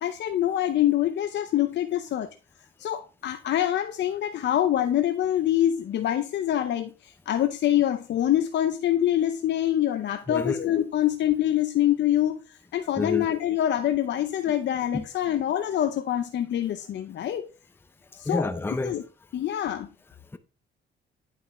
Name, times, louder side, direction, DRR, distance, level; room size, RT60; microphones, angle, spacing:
voice 1, 0.0-2.3 2.8-17.5 18.2-18.5 18.8-19.0 19.3-19.9, left 11 dB, 65° left, 0.6 m, -25 dB
voice 2, 10.3-10.6 12.9-13.3 14.9-15.1 18.3-19.0, left 3 dB, 10° left, 0.6 m, -28 dB
9.3 x 5.7 x 3.1 m
cardioid pair, 90°, 20 cm